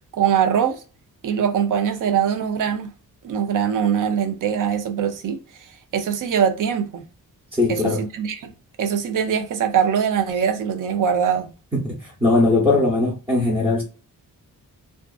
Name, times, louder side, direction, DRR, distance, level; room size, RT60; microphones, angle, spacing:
voice 1, 0.1-0.8 1.2-2.9 3.2-7.1 7.7-8.5 8.8-11.5, right 8 dB, 60° right, 0.6 m, -22 dB
voice 2, 7.5-8.0 11.7-13.8, left 2 dB, 15° right, 0.8 m, -20 dB
2.5 x 2.4 x 2.3 m
wide cardioid pair, 120°, 35 cm